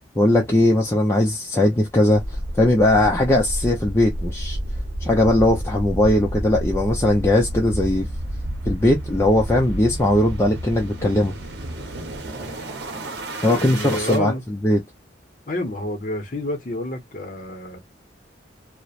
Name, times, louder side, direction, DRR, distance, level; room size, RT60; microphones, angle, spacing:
voice 1, 0.2-4.6 5.0-8.1 8.7-11.3 13.4-14.3 14.6-14.8, left 1 dB, 15° left, 0.4 m, -19 dB
sound 1, 2.1-14.2, right 1 dB, 60° right, 0.8 m, -30 dB
voice 2, 13.4-14.4 15.5-17.8, left 1 dB, 45° left, 0.7 m, -29 dB
2.9 x 2.1 x 2.3 m
head